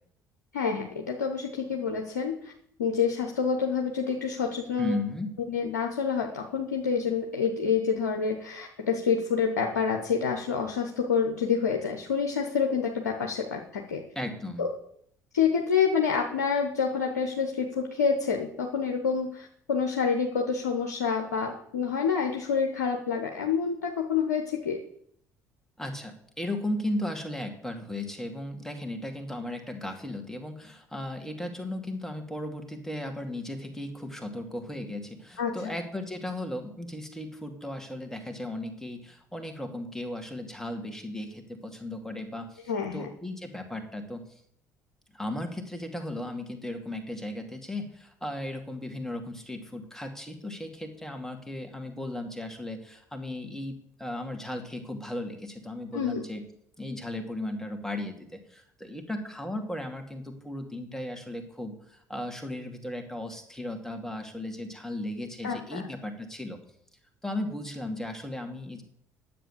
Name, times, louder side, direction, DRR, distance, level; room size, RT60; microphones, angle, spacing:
voice 1, 0.5-2.5 2.8-5.0 5.5-14.0 14.6-14.7 15.3-24.8 35.4-35.8 42.7-43.1 55.9-56.2 65.4-65.8, left 6 dB, 75° left, 1 dB, 1.0 m, -28 dB
voice 2, 4.8-5.3 14.2-14.6 25.8-44.2 45.1-53.7 54.0-56.4 56.8-66.6 67.2-68.8, left 1 dB, 5° left, 4 dB, 2.5 m, -36 dB
10.0 x 7.6 x 6.8 m, 0.69 s
figure-of-eight pair, 55°, 9 cm